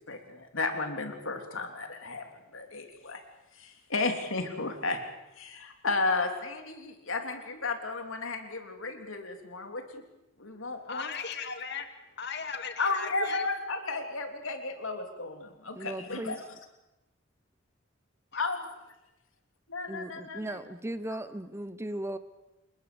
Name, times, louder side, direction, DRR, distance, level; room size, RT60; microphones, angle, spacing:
voice 1, 0.1-2.2 2.5-3.2 3.5-5.0 5.4-10.0 10.4-11.1 12.8-16.4 18.4-18.6 19.7-20.6, left 3 dB, 80° left, 5 dB, 3.3 m, -33 dB
voice 2, 10.9-11.9 12.2-13.4 18.3-18.4, left 6 dB, 55° left, 7 dB, 2.5 m, -37 dB
voice 3, 15.8-16.4 19.9-22.2, right 1 dB, 15° right, 13 dB, 0.7 m, -37 dB
28.0 x 20.5 x 7.0 m, 0.98 s
head